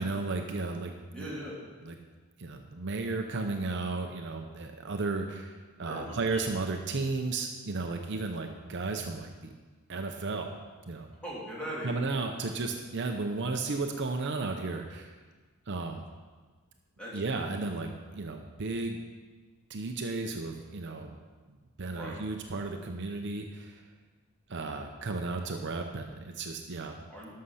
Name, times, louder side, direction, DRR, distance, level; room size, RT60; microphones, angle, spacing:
voice 1, 0.0-1.3 1.8-2.0 2.4-9.5 9.9-10.5 10.9-11.1 11.8-15.2 15.7-16.0 17.1-19.0 19.7-21.1 21.5-23.8 24.5-27.0, right 3 dB, 55° right, 4 dB, 0.7 m, -34 dB
voice 2, 1.1-1.6 5.8-6.4 11.2-12.0 17.0-17.2 21.9-22.2 27.1-27.3, equal, 5° left, -7 dB, 3.1 m, -39 dB
11.5 x 6.5 x 5.6 m, 1.4 s
head